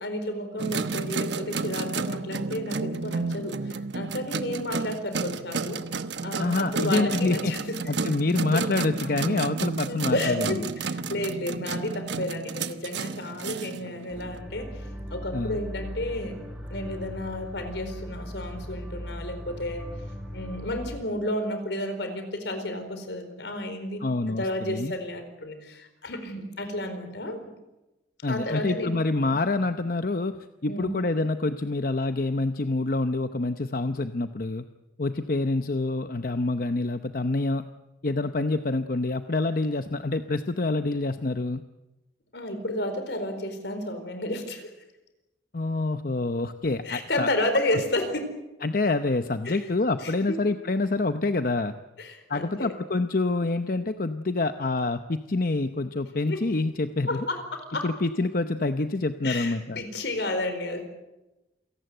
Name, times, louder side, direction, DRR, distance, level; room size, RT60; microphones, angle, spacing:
voice 1, 0.0-5.9 6.2-7.8 8.5-8.6 9.9-14.8 15.1-16.4 16.7-19.9 20.3-27.5 28.3-28.9 30.7-30.9 42.3-44.7 46.8-48.4 49.4-49.6 50.0-50.4 52.0-52.7 56.3-56.4 57.1-57.9 59.2-61.0, left 1 dB, 80° left, 8 dB, 4.4 m, -32 dB
sound 1, 0.6-14.4, right 4 dB, 80° right, 1.1 m, -32 dB
voice 2, 6.4-7.5 7.9-10.7 15.3-15.6 24.0-24.9 28.2-30.3 30.6-34.6 35.0-37.6 38.0-41.6 45.5-47.3 48.6-51.7 52.3-57.3 57.8-59.8, left 2 dB, 50° left, 9 dB, 0.8 m, -27 dB
sound 2, 14.1-21.0, equal, 5° right, 4.9 m, -38 dB
28.5 x 18.0 x 7.9 m, 1.0 s
head